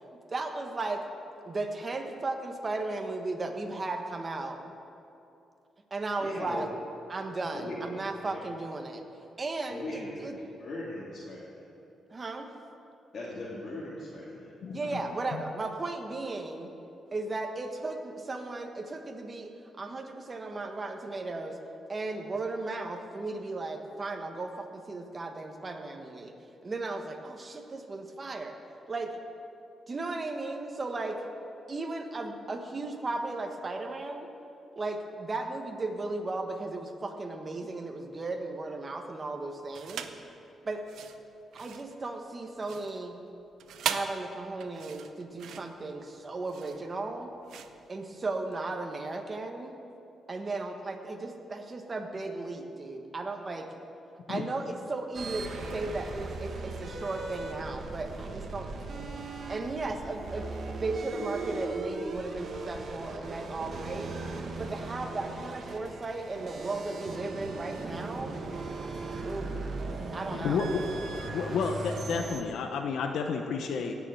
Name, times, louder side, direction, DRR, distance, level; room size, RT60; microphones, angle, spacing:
voice 1, 0.3-1.0 1.4-4.6 5.9-6.7 7.1-9.0 9.4-10.3 12.1-12.5 14.7-16.7 17.1-19.5 19.8-21.6 21.9-26.3 26.6-28.5 28.9-29.2 29.9-31.2 31.7-34.3 34.7-40.1 40.6-40.8 41.5-43.2 43.8-47.3 47.9-49.8 50.3-53.7 54.3-58.7 59.5-60.5 60.7-64.1 64.6-68.4 69.2-69.5 70.1-70.6, right 2 dB, 30° right, 4 dB, 1.4 m, -35 dB
voice 2, 6.2-6.7 7.5-8.4 9.7-11.6 13.1-14.5, left 1 dB, 50° left, -8 dB, 3.0 m, -39 dB
voice 3, 14.6-15.0 15.3-15.4 54.3-54.4 70.3-70.8 71.3-74.0, left 5 dB, 80° left, 5 dB, 0.9 m, -31 dB
sound 1, 39.7-40.3 40.8-48.6, right 8 dB, 85° right, 0.8 m, -39 dB
sound 2, 55.1-72.4, right 3 dB, 55° right, 1.6 m, -38 dB
18.5 x 7.3 x 7.7 m, 2.7 s
cardioid pair, 115°, 0 cm